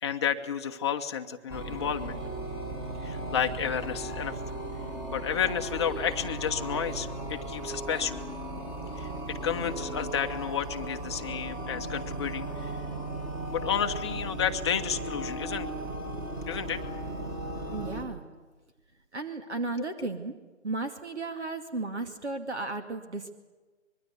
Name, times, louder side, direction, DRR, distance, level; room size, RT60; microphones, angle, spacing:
voice 1, 0.0-2.2 3.0-4.4 5.1-8.2 9.0-12.8 13.5-15.7 16.5-16.8, left 8 dB, 20° left, 5 dB, 1.0 m, -31 dB
sound 1, 1.5-18.0, right 1 dB, 10° right, 2.1 m, -36 dB
voice 2, 17.7-18.2 19.1-20.3 20.6-23.3, right 3 dB, 65° right, 6 dB, 2.4 m, -34 dB
25.5 x 22.0 x 8.2 m, 1.3 s
figure-of-eight pair, 145°, 37 cm